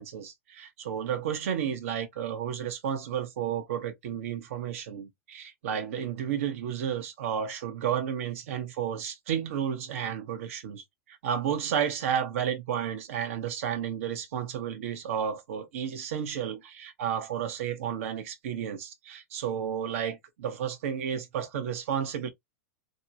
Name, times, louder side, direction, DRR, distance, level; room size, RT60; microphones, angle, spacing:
voice 1, 0.0-22.3, right 8 dB, 70° right, 0.8 m, -32 dB
2.6 x 2.2 x 2.7 m
hypercardioid pair, 105°, 8 cm